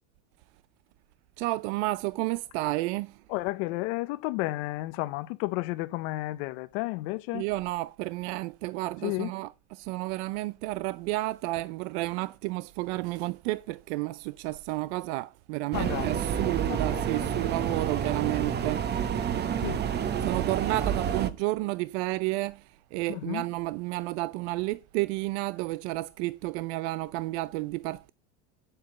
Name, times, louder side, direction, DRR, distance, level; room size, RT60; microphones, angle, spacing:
voice 1, 1.4-3.2 7.3-18.9 20.2-28.1, right 20 dB, 75° right, 0.6 m, -31 dB
voice 2, 3.3-7.4 9.0-9.3 15.7-16.2 16.7-17.3 19.6-19.8 23.1-23.4, left 20 dB, 70° left, 0.8 m, -32 dB
sound 1, 15.7-21.3, right 8 dB, 30° right, 1.0 m, -29 dB
9.1 x 7.9 x 7.9 m
supercardioid pair, 140°, 34 cm